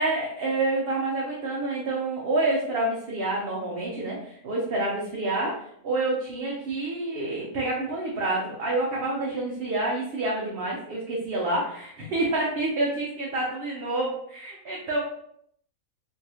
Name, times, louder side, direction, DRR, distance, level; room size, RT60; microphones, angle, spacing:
voice 1, 0.0-15.0, right 2 dB, 55° right, -4 dB, 0.7 m, -28 dB
3.1 x 2.7 x 2.7 m, 0.68 s
omnidirectional pair, 1.5 m